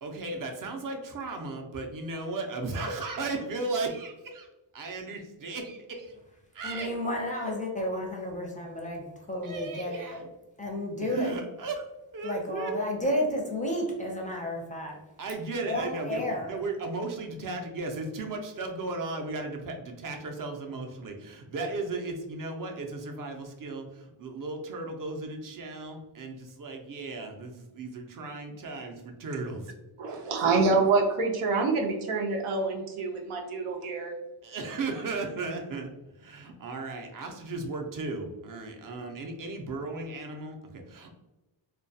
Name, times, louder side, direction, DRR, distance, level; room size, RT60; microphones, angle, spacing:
voice 1, 0.0-4.5 4.7-6.2 6.5-6.9 7.3-7.6 9.4-10.3 11.0-11.9 12.1-12.7 15.2-29.7 30.1-30.6 34.4-41.1, right 3 dB, 45° right, 3 dB, 0.5 m, -36 dB
voice 2, 6.6-10.2 10.6-11.4 12.2-15.0 15.7-16.5, left 1 dB, 15° left, -1 dB, 0.4 m, -32 dB
voice 3, 30.0-34.1, right 3 dB, 85° right, 2 dB, 0.6 m, -26 dB
2.3 x 2.2 x 2.6 m, 1.0 s
wide cardioid pair, 100°, 49 cm